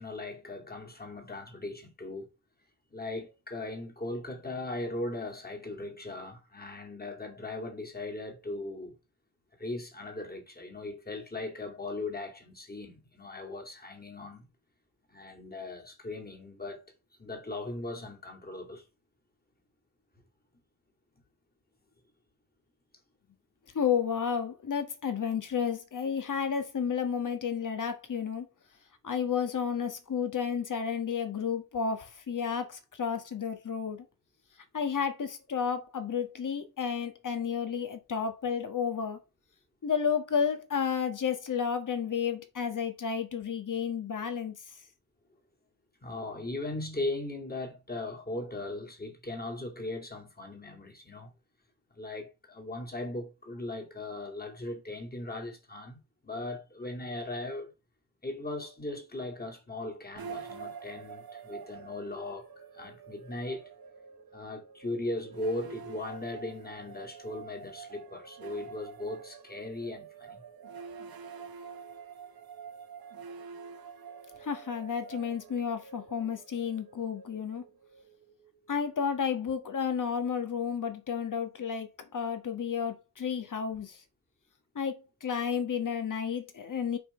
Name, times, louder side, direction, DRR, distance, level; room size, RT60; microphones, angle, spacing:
voice 1, 0.0-2.3 2.9-8.9 9.6-14.5 15.1-16.9 17.2-18.8 46.0-51.3 51.9-57.7 58.2-62.5 62.7-63.7 64.3-70.4, left 2 dB, 25° left, 2.3 m, -38 dB
voice 2, 23.7-28.5 29.0-34.0 34.7-39.2 39.8-44.5 74.4-77.6 78.7-84.0 84.7-87.0, left 7 dB, 55° left, 1.5 m, -31 dB
sound 1, 60.2-79.3, right 6 dB, 70° right, 1.4 m, -47 dB
6.0 x 5.2 x 4.3 m
wide cardioid pair, 130°, 38 cm